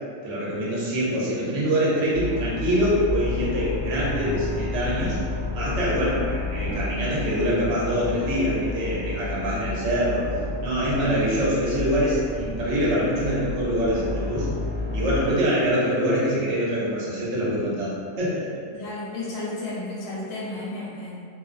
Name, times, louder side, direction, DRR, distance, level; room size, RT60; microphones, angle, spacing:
voice 1, 0.2-5.2 5.5-10.3 10.6-14.5 14.9-18.5, equal, 60° right, -7 dB, 0.8 m, -24 dB
sound 1, 2.1-15.2, left 2 dB, 15° right, 1.0 m, -31 dB
voice 2, 18.7-21.2, left 2 dB, 60° left, -7 dB, 0.7 m, -33 dB
2.5 x 2.0 x 2.4 m, 2.1 s
omnidirectional pair, 1.6 m